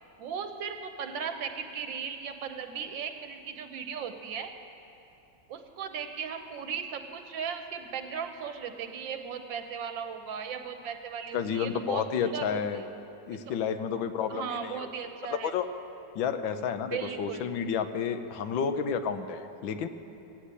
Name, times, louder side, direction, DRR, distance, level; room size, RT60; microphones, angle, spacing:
voice 1, 0.2-4.5 5.5-12.6 13.5-13.6 14.3-15.5 16.9-17.4, right 7 dB, 75° right, 7 dB, 1.5 m, -37 dB
voice 2, 11.3-12.8 13.3-14.9 15.3-15.7 16.1-19.9, left 7 dB, 85° left, 9 dB, 1.5 m, -31 dB
16.5 x 9.9 x 8.2 m, 2.9 s
omnidirectional pair, 2.0 m